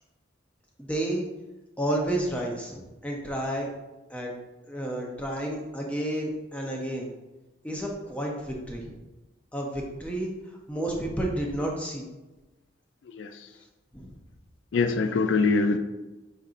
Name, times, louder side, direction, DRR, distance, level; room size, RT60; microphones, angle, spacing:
voice 1, 0.8-1.2 1.8-3.7 4.1-4.3 4.7-7.1 7.6-8.9 9.5-10.3 10.7-12.0 13.9-14.1, right 1 dB, 5° left, 0.6 m, -31 dB
voice 2, 13.0-13.5 14.7-15.8, left 4 dB, 80° left, 0.4 m, -24 dB
5.0 x 4.1 x 2.5 m
head